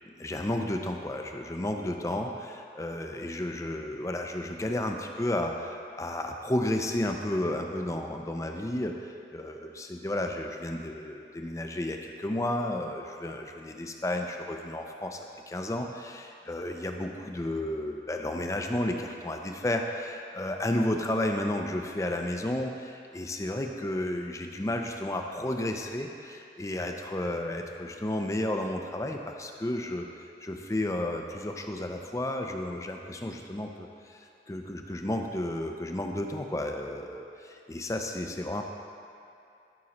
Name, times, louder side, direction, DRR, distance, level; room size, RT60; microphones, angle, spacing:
voice 1, 0.2-30.1 30.4-38.6, left 1 dB, 20° left, 3 dB, 0.5 m, -32 dB
13.5 x 6.2 x 2.9 m, 2.5 s
head